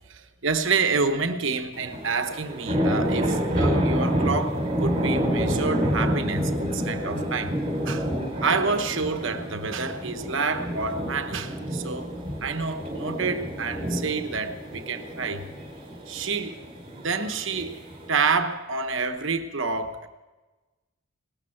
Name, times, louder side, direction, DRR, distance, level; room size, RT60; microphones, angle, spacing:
voice 1, 0.1-7.6 7.8-8.1 8.4-12.1 12.4-15.5 16.1-16.6 17.0-17.8 18.1-20.1, right 4 dB, 60° right, 1.1 m, -28 dB
sound 1, 1.7-18.1, equal, 25° right, 4.7 m, -28 dB
18.5 x 13.0 x 5.8 m
head